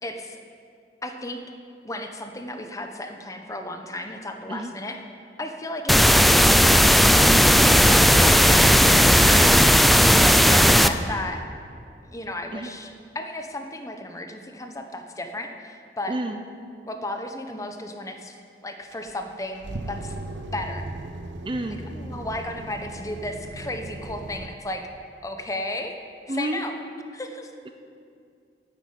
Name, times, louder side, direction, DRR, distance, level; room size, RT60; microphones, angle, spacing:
voice 1, 0.0-0.4 1.0-1.4 1.8-5.0 5.4-6.7 7.6-9.7 10.0-11.4 12.0-16.2 16.9-18.3 18.6-20.2 20.5-20.8 21.9-24.8 25.2-25.9 26.3-26.8 27.1-27.5, left 1 dB, 20° left, 5 dB, 0.9 m, -34 dB
sound 1, 5.9-10.9, equal, ahead, 0.3 m, -15 dB
voice 2, 7.2-7.6 12.5-12.7 16.1-16.4 21.4-21.8 26.3-26.6, right 1 dB, 30° right, 6 dB, 0.7 m, -30 dB
sound 2, 18.9-24.5, right 2 dB, 90° right, 0.9 m, -37 dB
10.0 x 8.0 x 9.3 m, 2.4 s
head